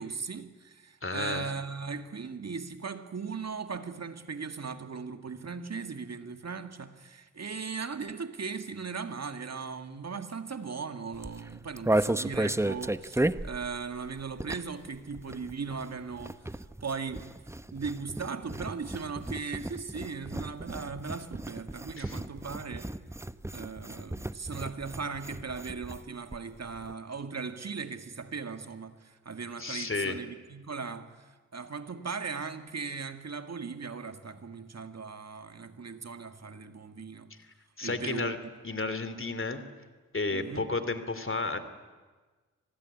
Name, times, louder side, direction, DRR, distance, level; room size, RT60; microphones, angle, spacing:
voice 1, 0.0-17.3 17.7-23.0 23.5-37.3 37.8-38.3 40.3-40.7, right 5 dB, 55° right, 1.9 m, -38 dB
voice 2, 1.0-1.5 22.0-22.2 29.6-30.2 37.3-37.4 37.8-38.4 38.6-39.6 40.1-41.6, left 3 dB, 40° left, 3.1 m, -32 dB
sound 1, 11.1-14.9 15.1-26.0 26.3-26.4 26.6-26.9, right 1 dB, 10° right, 0.9 m, -34 dB
25.5 x 19.5 x 9.8 m
cardioid pair, 45°, 32 cm